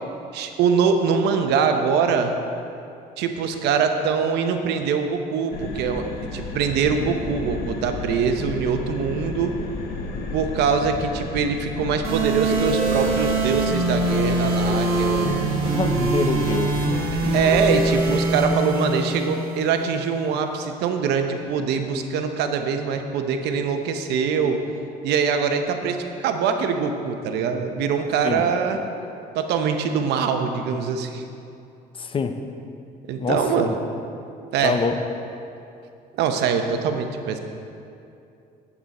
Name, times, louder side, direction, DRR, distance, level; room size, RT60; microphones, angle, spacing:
voice 1, 0.3-2.3 3.2-9.5 10.3-15.5 17.3-24.6 25.0-28.8 29.3-31.2 33.1-33.7 34.5-34.8 36.1-37.4, right 6 dB, 80° right, 6 dB, 0.8 m, -23 dB
sound 1, 5.5-18.2, left 3 dB, 70° left, 1.0 m, -33 dB
sound 2, 12.0-20.0, right 2 dB, 65° right, 2.1 m, -23 dB
voice 2, 15.7-16.7 28.2-28.4 32.0-32.3 33.2-33.7 34.6-34.9, left 5 dB, 30° left, 7 dB, 0.6 m, -25 dB
8.7 x 8.1 x 4.2 m, 2.6 s
cardioid pair, 110°, 17 cm